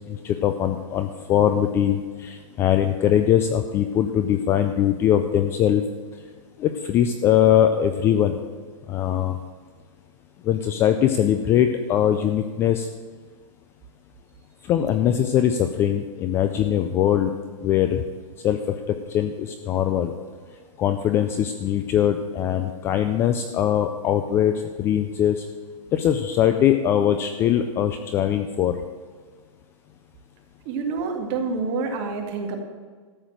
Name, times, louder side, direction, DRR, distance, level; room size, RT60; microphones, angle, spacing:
voice 1, 0.1-5.8 6.6-8.3 8.9-9.3 10.5-12.9 14.7-17.3 17.6-18.0 18.4-18.7 19.1-20.1 20.8-24.5 24.8-25.4 25.9-28.8, left 10 dB, 15° left, 8 dB, 0.3 m, -21 dB
voice 2, 30.7-32.6, right 4 dB, 30° right, 3 dB, 1.9 m, -27 dB
13.0 x 6.9 x 7.5 m, 1.5 s
hypercardioid pair, 155°, 18 cm